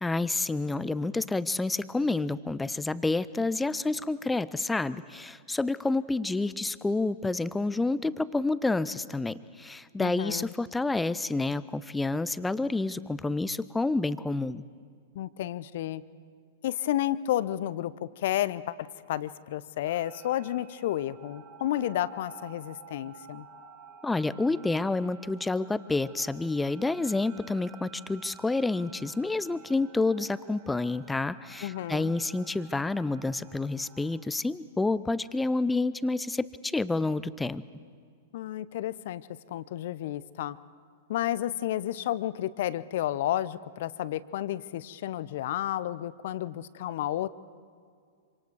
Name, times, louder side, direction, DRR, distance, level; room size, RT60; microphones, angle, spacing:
voice 1, 0.0-14.6 24.0-37.6, left 3 dB, 10° left, 17 dB, 0.6 m, -29 dB
voice 2, 10.0-10.5 15.1-16.0 16.6-23.5 31.6-32.1 38.3-40.6 41.1-47.3, left 13 dB, 55° left, 17 dB, 0.7 m, -31 dB
sound 1, 19.8-34.3, right 6 dB, 35° right, 2.4 m, -52 dB
26.5 x 25.5 x 4.8 m, 2.2 s
figure-of-eight pair, 100°, 0 cm